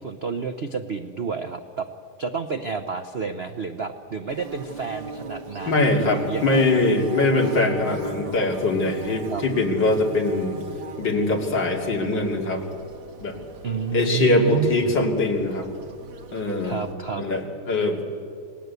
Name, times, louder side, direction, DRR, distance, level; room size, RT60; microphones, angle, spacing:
voice 1, 0.0-1.9 2.2-6.9 9.3-9.4 13.6-14.9 16.6-17.2, right 5 dB, 60° right, 7 dB, 0.6 m, -30 dB
Bird / Buzz, 4.3-16.9, right 4 dB, 80° right, 2.7 m, -39 dB
voice 2, 5.7-10.6 11.0-12.6 13.2-13.4 13.9-15.7 16.3-16.8 17.2-18.0, left 2 dB, 55° left, 1 dB, 3.4 m, -22 dB
27.5 x 19.5 x 8.2 m, 2.4 s
omnidirectional pair, 2.4 m